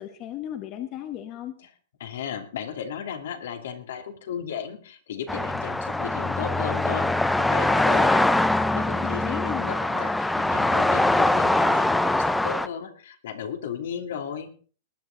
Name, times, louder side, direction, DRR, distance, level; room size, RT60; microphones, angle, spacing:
voice 1, 0.0-1.5 9.0-9.8, left 11 dB, 30° left, 8 dB, 1.2 m, -35 dB
voice 2, 2.0-7.1 7.4-8.3 8.8-14.5, left 8 dB, 70° left, 6 dB, 2.7 m, -35 dB
sound 1, 5.3-12.7, left 2 dB, 5° left, 0.6 m, -23 dB
19.5 x 10.5 x 4.0 m, 0.40 s
supercardioid pair, 160°, 0 cm